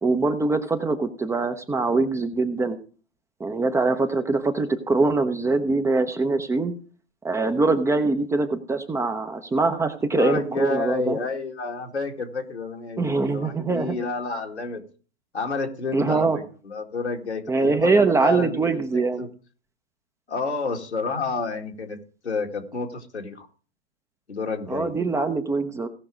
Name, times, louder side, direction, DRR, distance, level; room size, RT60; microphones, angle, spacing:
voice 1, 0.0-2.8 3.4-6.7 7.2-11.2 13.0-14.0 15.9-16.4 17.5-19.2 24.7-25.9, right 3 dB, 10° right, 8 dB, 0.8 m, -23 dB
voice 2, 10.1-14.8 15.3-16.3 16.6-19.3 20.3-22.0 22.2-23.5 24.3-24.9, left 4 dB, 85° left, 2 dB, 2.3 m, -29 dB
17.5 x 5.8 x 5.1 m, 0.39 s
figure-of-eight pair, 110°, 33 cm